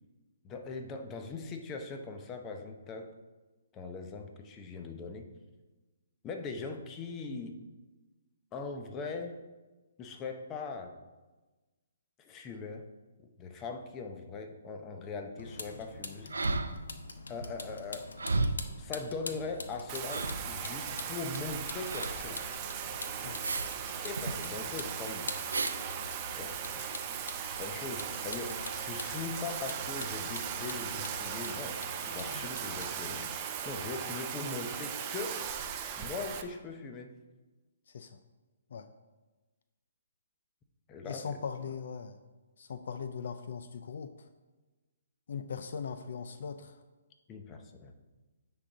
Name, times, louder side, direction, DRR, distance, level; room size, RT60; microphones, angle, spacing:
voice 1, 0.4-3.1 3.7-5.2 6.2-7.6 8.5-9.4 10.0-11.0 12.2-12.8 13.4-16.7 17.3-18.0 18.8-22.6 24.0-25.3 26.3-26.8 27.6-35.4 36.0-37.1 40.9-41.2 47.3-48.0, left 4 dB, 20° left, 5 dB, 0.7 m, -41 dB
Vehicle, 15.4-33.4, left 3 dB, 80° left, 0.7 m, -45 dB
sound 1, 16.3-17.1 17.4-17.5 18.2-18.8 19.6-19.7 20.1-20.6 21.9-22.2 23.4-23.8 24.0-24.3 25.5-25.8 26.5-26.6, right 3 dB, 85° right, 0.5 m, -33 dB
Bathtub (filling or washing), 19.9-36.4, right 8 dB, 30° right, 0.6 m, -38 dB
voice 2, 37.9-38.2 38.7-38.9 41.0-42.2 42.6-44.1 45.3-46.8, left 6 dB, 60° left, 9 dB, 0.4 m, -40 dB
9.8 x 3.9 x 3.9 m, 1.2 s
hypercardioid pair, 145°, 0 cm